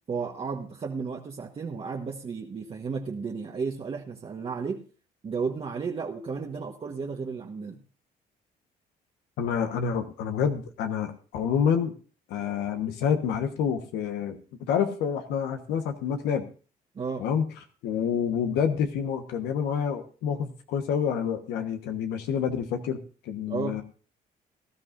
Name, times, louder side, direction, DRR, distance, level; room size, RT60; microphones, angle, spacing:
voice 1, 0.1-4.9 5.2-7.8 16.9-17.3 23.5-23.8, right 5 dB, 35° right, 0 dB, 1.3 m, -33 dB
voice 2, 9.4-11.9 12.3-16.5 17.2-17.5 17.8-23.8, left 7 dB, 90° left, 6 dB, 1.3 m, -28 dB
18.5 x 12.5 x 2.6 m, 0.37 s
cardioid pair, 100°, 17 cm